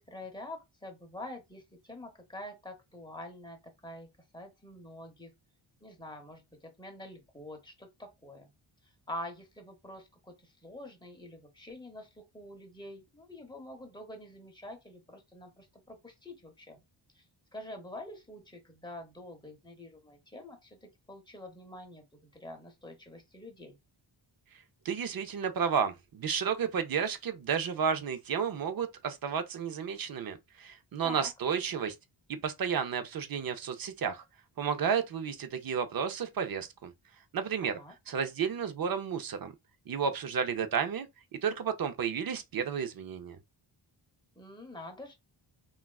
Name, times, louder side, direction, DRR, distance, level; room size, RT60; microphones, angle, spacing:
voice 1, 0.0-4.1 4.3-5.3 5.8-8.5 9.1-16.8 17.1-17.2 17.5-23.8 31.0-31.3 37.6-37.9 44.4-45.1, left 1 dB, 10° left, 0.7 m, -46 dB
voice 2, 24.8-31.9 32.3-34.2 34.6-36.9 37.3-37.7 38.1-39.5 39.9-41.1 41.4-43.4, right 7 dB, 45° right, 0.5 m, -32 dB
3.4 x 2.3 x 2.3 m
wide cardioid pair, 140°, 49 cm